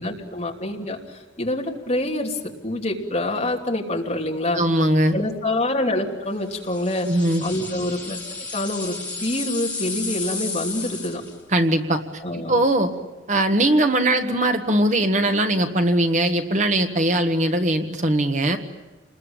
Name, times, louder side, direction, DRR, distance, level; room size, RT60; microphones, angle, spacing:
voice 1, 0.0-4.6 5.1-7.1 7.4-8.2 8.5-11.2 12.2-12.5, left 1 dB, 35° left, 0 dB, 3.0 m, -26 dB
voice 2, 4.5-5.2 7.1-7.4 11.5-12.0 12.3-12.9 13.3-18.6, right 1 dB, 40° right, 6 dB, 1.4 m, -20 dB
sound 1, 6.6-11.4, left 3 dB, 10° left, 2.9 m, -33 dB
28.5 x 21.0 x 8.9 m, 1.2 s
head